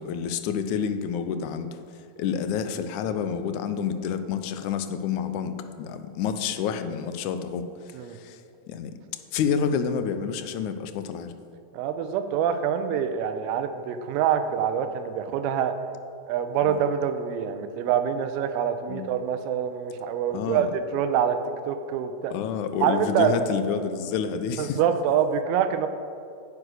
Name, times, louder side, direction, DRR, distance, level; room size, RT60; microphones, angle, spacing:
voice 1, 0.0-1.8 2.2-7.7 8.1-8.4 8.7-9.0 9.3-11.3 16.6-16.8 18.9-19.1 20.3-20.7 22.3-24.8, left 7 dB, 50° left, 10 dB, 0.7 m, -29 dB
voice 2, 11.7-15.7 16.3-21.4 21.6-22.3 22.8-23.4 24.6-25.9, right 8 dB, 50° right, 9 dB, 0.8 m, -25 dB
9.6 x 4.8 x 6.6 m, 2.5 s
figure-of-eight pair, 90°, 0 cm